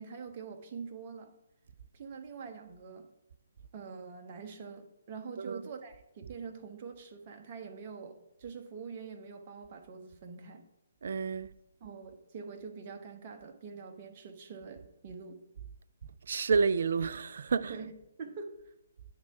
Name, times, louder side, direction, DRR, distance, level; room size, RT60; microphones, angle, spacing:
voice 1, 0.0-1.3 1.9-3.1 3.7-10.6 11.8-15.4 17.7-17.9 18.2-18.7, right 5 dB, 35° right, 0.8 m, -45 dB
voice 2, 11.0-11.5 16.0-17.8, right 5 dB, 50° right, 0.3 m, -30 dB
9.4 x 3.7 x 5.6 m
figure-of-eight pair, 135°, 0 cm